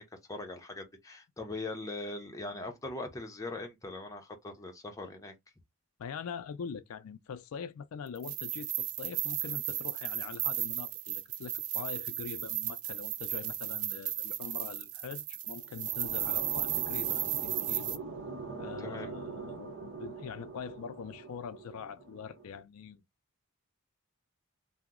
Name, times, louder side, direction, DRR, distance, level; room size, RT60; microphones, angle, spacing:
voice 1, 0.0-5.3 18.8-19.1, left 2 dB, 15° left, 0.6 m, -41 dB
voice 2, 6.0-18.0 18.6-23.0, left 6 dB, 80° left, 0.4 m, -43 dB
sound 1, 8.2-18.0, right 13 dB, 80° right, 0.4 m, -35 dB
sound 2, 15.4-22.6, right 3 dB, 60° right, 0.9 m, -43 dB
2.8 x 2.0 x 3.6 m
head